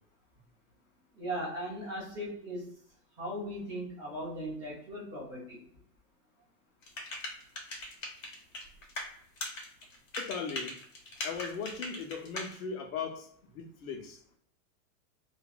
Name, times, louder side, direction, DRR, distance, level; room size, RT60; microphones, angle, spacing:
voice 1, 1.1-2.7 3.2-5.6, equal, 10° right, -9 dB, 0.5 m, -38 dB
sound 1, 6.8-9.1 9.4-12.5, left 1 dB, 65° left, 1.1 m, -39 dB
voice 2, 10.2-10.7 11.2-14.2, left 6 dB, 85° left, 4 dB, 0.9 m, -38 dB
3.0 x 2.5 x 2.4 m, 0.64 s
supercardioid pair, 175°, 41 cm